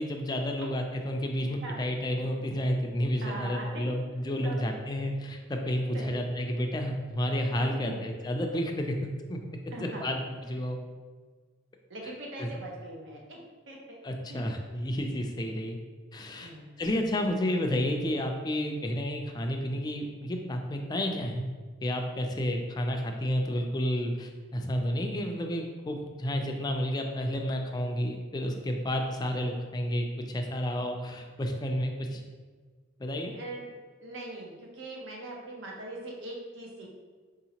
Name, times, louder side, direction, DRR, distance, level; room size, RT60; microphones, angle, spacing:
voice 1, 0.0-9.0 9.3-9.4 9.8-10.8 12.4-12.5 14.0-15.8 16.1-16.5 16.8-21.5 21.8-32.2 33.0-33.3, equal, 20° left, 3 dB, 0.3 m, -31 dB
voice 2, 3.2-3.9 4.4-4.6 5.9-6.2 7.7-8.0 9.7-10.2 10.5-10.6 11.9-13.4 13.7-14.0 14.3-14.5 16.4-16.7 33.1-33.7 34.0-36.9, right 2 dB, 70° right, -2 dB, 0.8 m, -41 dB
4.9 x 2.8 x 2.8 m, 1.5 s
head